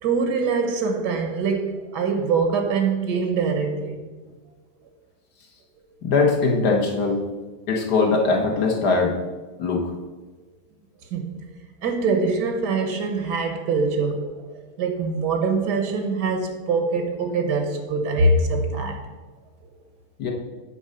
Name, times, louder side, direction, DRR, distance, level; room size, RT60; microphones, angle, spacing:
voice 1, 0.0-4.0 11.1-11.4 11.8-14.5 14.8-19.1, right 4 dB, 90° right, 6 dB, 1.6 m, -23 dB
voice 2, 6.0-7.2 7.7-9.2 9.6-9.9 20.2-20.3, left 4 dB, 80° left, 0 dB, 1.9 m, -21 dB
8.8 x 4.1 x 6.5 m, 1.3 s
omnidirectional pair, 1.7 m